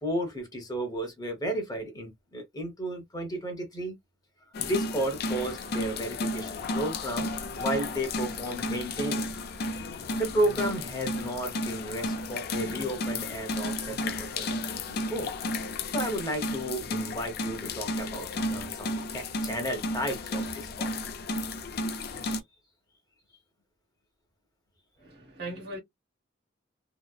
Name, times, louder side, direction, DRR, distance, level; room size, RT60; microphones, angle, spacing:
voice 1, 0.0-3.9 4.6-9.4 10.1-15.3 15.9-20.9, right 1 dB, 20° left, 0.9 m, -33 dB
sound 1, 4.5-22.4, left 2 dB, 55° left, 0.4 m, -33 dB
voice 2, 25.0-25.8, right 1 dB, 60° right, 1.3 m, -39 dB
2.9 x 2.0 x 2.2 m
head